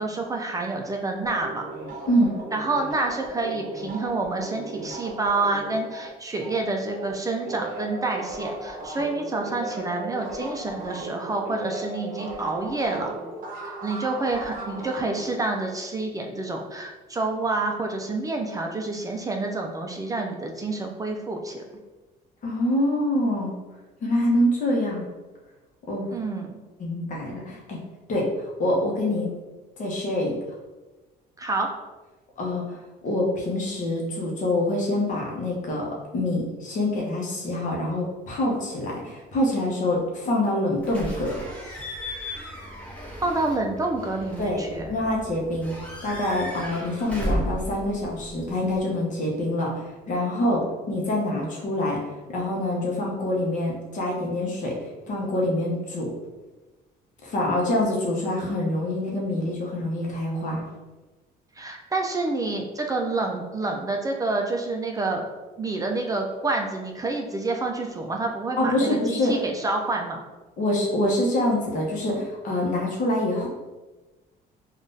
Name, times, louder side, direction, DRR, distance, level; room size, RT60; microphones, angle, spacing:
voice 1, 0.0-1.6 2.5-13.1 13.6-21.6 26.1-26.5 31.4-31.7 43.2-44.9 50.4-50.6 61.6-65.2 65.6-70.2, right 3 dB, 20° right, 2 dB, 0.4 m, -28 dB
sound 1, 1.2-7.1 7.4-15.4, right 2 dB, 55° right, 0.7 m, -37 dB
voice 2, 2.1-2.4 22.4-23.5 24.0-25.1 25.9-26.1 26.8-27.8 28.1-29.3 29.8-30.4 32.4-41.3 44.4-44.6 44.9-45.7 46.0-52.0 52.3-54.8 55.1-56.1 57.2-60.7 68.6-69.4 70.6-73.5, left 1 dB, 50° left, -2 dB, 0.8 m, -25 dB
Slam / Squeak / Alarm, 40.8-48.8, equal, 10° left, 0.9 m, -35 dB
3.5 x 2.4 x 2.6 m, 1.2 s
cardioid pair, 110°, 17 cm